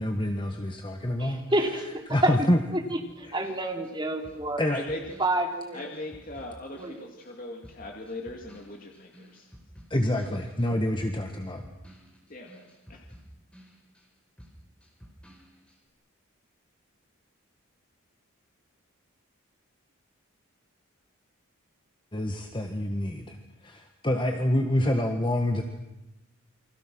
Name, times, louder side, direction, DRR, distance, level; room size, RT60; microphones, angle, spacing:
voice 1, 0.0-1.4 2.1-2.6 3.3-3.4 4.6-4.8 9.9-11.6 22.1-25.6, left 1 dB, 20° left, 4 dB, 1.6 m, -27 dB
voice 2, 1.2-2.3 2.9-4.6 5.2-5.8 6.8-7.0, right 1 dB, 20° right, 2 dB, 3.2 m, -28 dB
sound 1, 3.1-7.4 7.6-14.1 14.4-15.8, equal, 5° left, 4.8 m, -52 dB
voice 3, 4.7-5.4 5.7-9.5 12.3-13.2, left 2 dB, 40° left, 1 dB, 2.4 m, -40 dB
29.5 x 24.5 x 6.2 m, 0.95 s
head